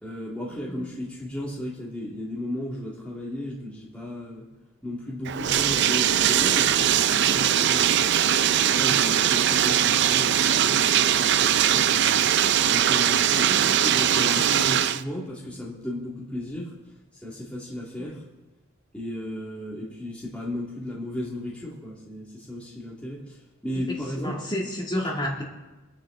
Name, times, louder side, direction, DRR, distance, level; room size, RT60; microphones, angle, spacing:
voice 1, 0.0-4.5 4.8-8.1 8.7-12.3 12.6-16.7 17.2-18.2 18.9-23.4 23.6-24.4, left 1 dB, 5° left, -6 dB, 2.4 m, -34 dB
Bathtub (filling or washing), 5.3-15.0, right 10 dB, 55° right, 0.5 m, -21 dB
voice 2, 13.4-13.9 18.0-18.1 23.7-25.4, equal, 25° left, -3 dB, 2.7 m, -31 dB
24.5 x 10.0 x 3.9 m, 1.1 s
head